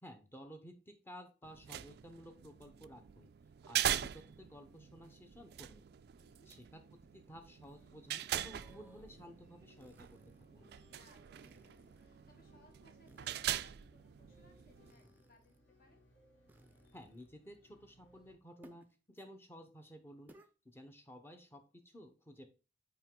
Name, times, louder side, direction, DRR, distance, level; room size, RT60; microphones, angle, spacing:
voice 1, 0.0-3.3 3.7-5.8 6.5-6.8 7.1-10.2 10.5-10.7 16.9-20.3 20.6-22.5, equal, 15° left, 6 dB, 0.9 m, -54 dB
sound 1, 1.4-14.9, right 11 dB, 60° right, 0.3 m, -42 dB
voice 2, 6.2-6.5 10.9-16.0, left 1 dB, 55° left, 2 dB, 1.8 m, -67 dB
sound 2, 7.6-18.4, equal, 70° left, 2.6 m, -67 dB
sound 3, 8.5-9.3 9.8-10.5 11.4-12.1 13.1-13.8 14.9-15.6 16.5-17.3 18.6-18.9 19.2-19.3 20.3-20.5, right 1 dB, 10° right, 0.6 m, -62 dB
5.4 x 4.8 x 3.7 m, 0.33 s
head